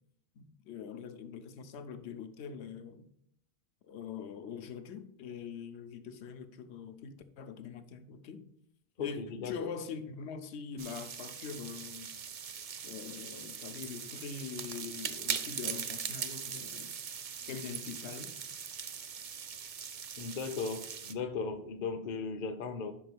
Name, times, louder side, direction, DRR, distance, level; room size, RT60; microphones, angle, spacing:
voice 1, 0.4-3.1 3.8-8.5 9.0-9.2 9.4-12.1 12.8-17.0 17.5-18.3, left 6 dB, 80° left, 0.9 m, -43 dB
voice 2, 9.0-9.7 20.2-20.8 21.1-22.9, left 5 dB, 50° left, 0.7 m, -37 dB
sound 1, 10.8-21.1, right 7 dB, 55° right, 0.4 m, -41 dB
5.5 x 4.4 x 5.9 m
omnidirectional pair, 1.1 m